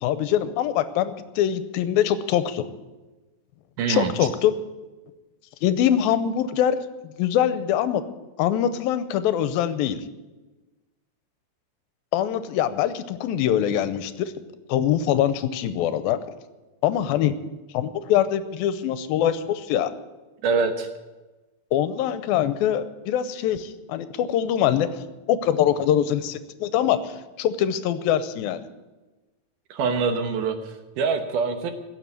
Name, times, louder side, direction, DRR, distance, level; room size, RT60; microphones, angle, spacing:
voice 1, 0.0-2.7 3.9-4.5 5.6-6.8 7.2-8.0 8.4-10.0 12.1-14.3 14.7-16.2 16.8-17.4 17.7-19.9 21.7-25.0 25.3-28.6, left 10 dB, 90° left, 13 dB, 2.5 m, -23 dB
voice 2, 3.8-4.1 20.4-20.9 29.7-31.7, right 5 dB, 70° right, 7 dB, 2.4 m, -24 dB
16.5 x 7.1 x 9.7 m, 1.2 s
omnidirectional pair, 4.2 m